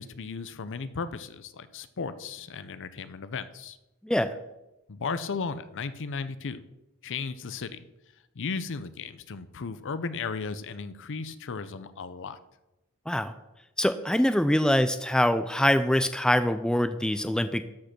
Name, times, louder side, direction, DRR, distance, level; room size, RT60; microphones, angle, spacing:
voice 1, 0.0-3.8 4.9-6.6 7.0-7.8 8.3-12.4, left 4 dB, 55° left, 13 dB, 0.6 m, -35 dB
voice 2, 4.0-4.3 13.1-13.3 13.8-17.6, left 1 dB, 5° left, 11 dB, 0.4 m, -24 dB
13.0 x 5.2 x 5.9 m, 0.97 s
head